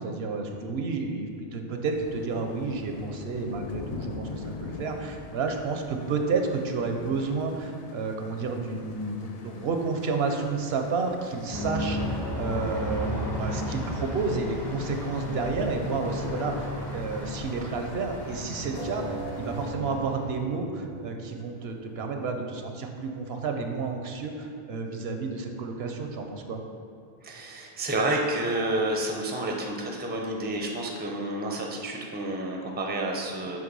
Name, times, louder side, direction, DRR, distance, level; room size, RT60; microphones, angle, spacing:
voice 1, 0.0-26.6, right 4 dB, 80° right, 4 dB, 0.9 m, -31 dB
sound 1, 1.9-19.7, left 4 dB, 55° left, 0.4 m, -44 dB
Aircraft, 11.5-20.5, left 1 dB, 25° left, 0.8 m, -34 dB
sound 2, 18.7-24.0, right 2 dB, 85° left, 1.7 m, -43 dB
voice 2, 27.2-33.6, right 1 dB, 15° right, 1 dB, 0.5 m, -30 dB
7.8 x 3.2 x 5.3 m, 2.3 s
omnidirectional pair, 1.0 m